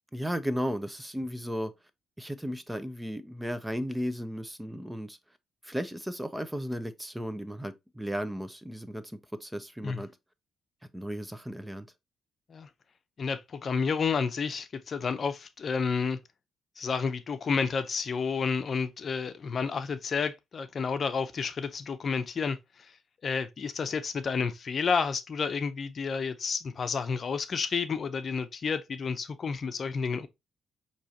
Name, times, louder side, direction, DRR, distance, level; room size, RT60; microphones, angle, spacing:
voice 1, 0.1-1.7 2.2-5.2 5.6-10.1 10.9-11.9, equal, 5° right, 0.5 m, -35 dB
voice 2, 13.2-16.2 16.8-22.6 23.2-30.3, left 5 dB, 45° left, 0.6 m, -30 dB
6.1 x 3.0 x 2.8 m
cardioid pair, 90°, 0 cm